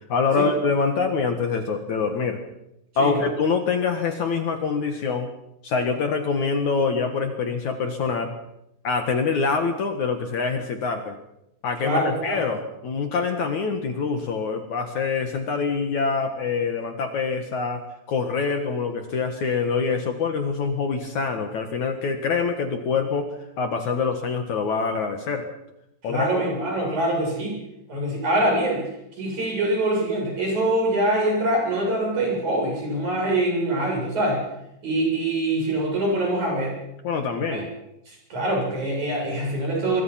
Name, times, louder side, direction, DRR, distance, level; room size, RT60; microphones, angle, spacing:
voice 1, 0.1-2.4 3.0-5.3 5.6-8.3 8.8-11.2 11.6-17.8 18.1-23.3 23.6-25.5 26.0-26.4 37.0-37.7, left 5 dB, 55° left, 6 dB, 2.5 m, -25 dB
voice 2, 3.0-3.3 11.8-12.4 26.1-27.6 27.9-28.8 29.2-34.4 34.8-36.7 37.5-37.6 38.3-40.0, right 1 dB, 40° right, 0 dB, 8.8 m, -24 dB
24.0 x 23.0 x 5.8 m, 0.82 s
omnidirectional pair, 5.0 m